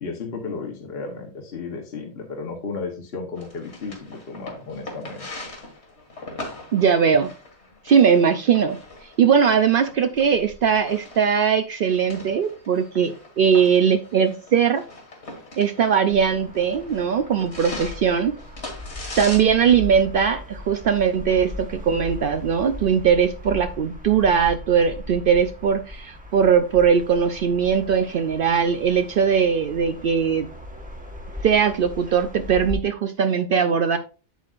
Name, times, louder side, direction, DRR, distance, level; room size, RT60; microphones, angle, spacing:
voice 1, 0.0-5.3, left 4 dB, 60° left, 2 dB, 1.3 m, -33 dB
sound 1, 3.4-19.4, left 2 dB, 85° left, 2.2 m, -40 dB
voice 2, 6.7-7.3 7.8-8.8 9.2-14.8 15.6-18.4 19.2-30.5 31.4-34.0, right 7 dB, 60° right, 9 dB, 0.7 m, -20 dB
sound 2, 16.1-32.8, left 2 dB, 10° right, 1.1 m, -38 dB
8.1 x 7.7 x 2.5 m, 0.34 s
omnidirectional pair, 1.1 m